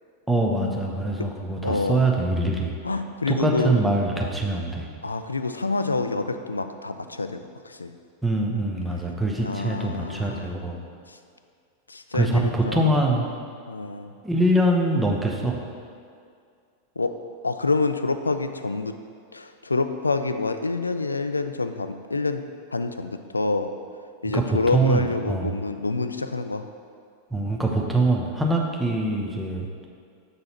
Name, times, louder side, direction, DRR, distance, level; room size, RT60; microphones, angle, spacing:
voice 1, 0.3-2.7 3.3-4.9 8.2-10.8 12.1-13.3 14.2-15.6 24.3-25.5 27.3-29.7, right 2 dB, 5° right, -1 dB, 0.8 m, -23 dB
voice 2, 1.6-2.0 2.8-3.8 5.0-7.9 9.4-10.4 11.1-11.2 11.9-12.9 13.7-14.1 17.0-17.1 17.4-18.9 19.3-22.4 22.7-23.7 24.2-26.7, left 3 dB, 80° left, 9 dB, 0.3 m, -27 dB
7.6 x 4.0 x 4.3 m, 2.3 s
figure-of-eight pair, 90°, 0 cm